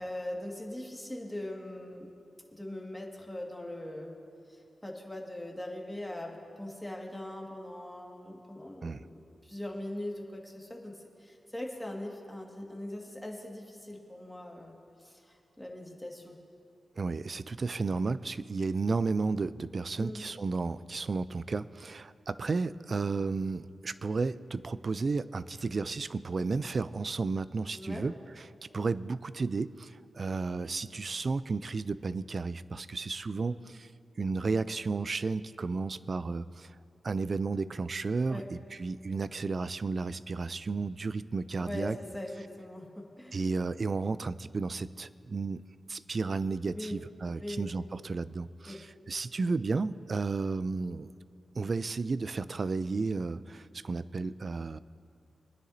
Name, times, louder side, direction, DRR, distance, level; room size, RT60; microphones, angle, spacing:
voice 1, 0.0-2.1 2.5-4.1 4.5-16.4 20.0-20.2 27.7-28.1 38.3-38.5 41.6-43.4 46.7-47.0 47.4-47.7 48.7-48.8, left 1 dB, 10° left, 0 dB, 1.9 m, -41 dB
voice 2, 17.0-33.9 34.2-36.8 37.0-42.0 43.3-45.6 45.9-51.1 51.5-54.8, right 4 dB, 50° right, 16 dB, 0.4 m, -33 dB
25.0 x 10.0 x 2.7 m, 2.4 s
cardioid pair, 60°, 0 cm